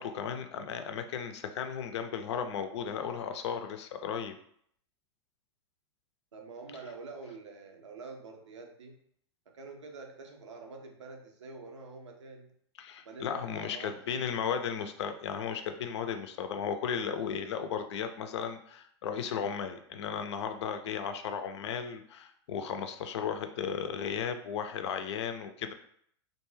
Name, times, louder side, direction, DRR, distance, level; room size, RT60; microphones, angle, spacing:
voice 1, 0.0-4.3 12.8-25.7, left 7 dB, 70° left, 8 dB, 0.4 m, -35 dB
voice 2, 6.3-9.0 9.5-12.5 13.0-14.3, right 3 dB, 85° right, 3 dB, 0.6 m, -46 dB
2.5 x 2.2 x 3.2 m, 0.66 s
hypercardioid pair, 110°, 15 cm